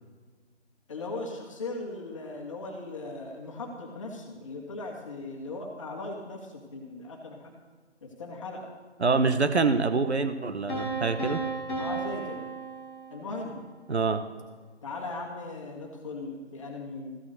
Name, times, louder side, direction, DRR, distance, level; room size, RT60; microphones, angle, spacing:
voice 1, 0.9-7.5 8.0-8.7 11.8-12.4 13.1-13.6 14.8-17.2, left 2 dB, 25° left, 0 dB, 1.7 m, -38 dB
voice 2, 9.0-11.4 13.9-14.2, right 4 dB, 65° right, 9 dB, 1.0 m, -25 dB
Piano, 10.7-13.6, right 3 dB, 10° left, 1.9 m, -34 dB
14.0 x 7.1 x 6.5 m, 1.4 s
figure-of-eight pair, 155°, 35 cm